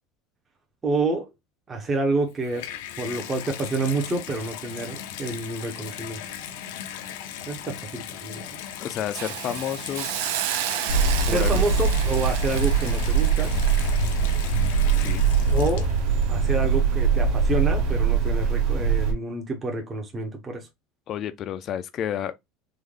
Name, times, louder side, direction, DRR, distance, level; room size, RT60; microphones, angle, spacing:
voice 1, 0.8-1.3 1.7-2.7 3.0-6.2 7.5-8.6 11.2-13.5 15.5-15.9 16.3-20.7, right 3 dB, 15° right, 0.6 m, -28 dB
Water tap faucet / Bathtub (filling or washing), 2.2-16.2 17.0-17.1, left 10 dB, 80° left, 0.5 m, -38 dB
voice 2, 8.8-10.1 11.3-11.6 15.0-15.2 21.1-22.4, left 10 dB, 30° left, 0.3 m, -30 dB
Hiss, 9.1-16.2 16.6-16.7, right 12 dB, 70° right, 0.4 m, -33 dB
sound 1, 10.9-19.1, right 5 dB, 45° right, 1.1 m, -22 dB
3.6 x 2.1 x 3.1 m
cardioid pair, 180°, 0 cm